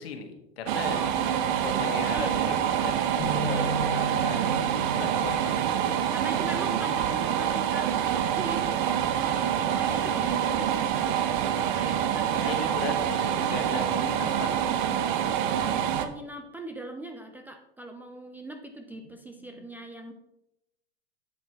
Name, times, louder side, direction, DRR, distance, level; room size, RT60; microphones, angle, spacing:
voice 1, 0.0-1.0 1.4-2.6 2.8-5.6 12.4-15.3 18.9-19.7, left 6 dB, 65° left, 5 dB, 1.5 m, -39 dB
sound 1, 0.7-16.1, right 9 dB, 50° right, 0.8 m, -26 dB
voice 2, 0.9-1.2 2.1-2.4 3.4-4.1 6.1-7.9 8.2-8.7 9.1-13.0 16.0-20.1, right 1 dB, 5° right, 4 dB, 0.4 m, -40 dB
sound 2, 3.2-7.4 7.9-8.2 9.0-9.4, right 1 dB, 45° left, 2.7 m, -37 dB
8.0 x 7.4 x 3.3 m, 0.87 s
hypercardioid pair, 110°, 32 cm